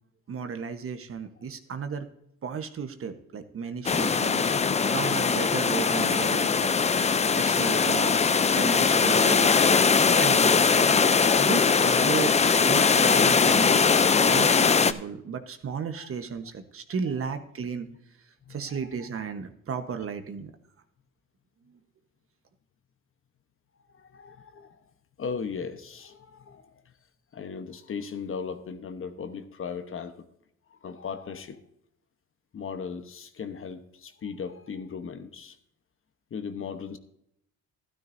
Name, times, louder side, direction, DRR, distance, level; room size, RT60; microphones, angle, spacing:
voice 1, 0.3-2.1 2.4-9.7 10.2-11.0 11.4-13.9 14.2-17.9 18.5-20.5, right 6 dB, 45° right, 8 dB, 1.1 m, -34 dB
sound 1, 3.8-14.9, left 5 dB, 20° left, 0.5 m, -21 dB
voice 2, 18.4-19.1 23.8-24.8 25.2-26.8 27.3-30.3 30.7-31.6 32.5-35.6 36.3-37.0, left 6 dB, 45° left, 9 dB, 1.0 m, -38 dB
12.5 x 12.5 x 2.6 m, 0.76 s
cardioid pair, 90°, 30 cm